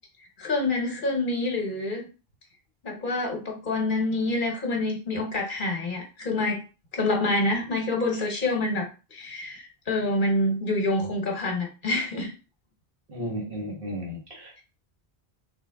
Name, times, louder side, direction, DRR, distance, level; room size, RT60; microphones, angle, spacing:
voice 1, 0.4-2.1 2.8-6.6 6.9-12.3, left 2 dB, 55° left, 2 dB, 1.1 m, -27 dB
voice 2, 13.1-14.6, equal, 60° right, -2 dB, 1.5 m, -34 dB
3.4 x 3.2 x 3.4 m, 0.32 s
omnidirectional pair, 1.0 m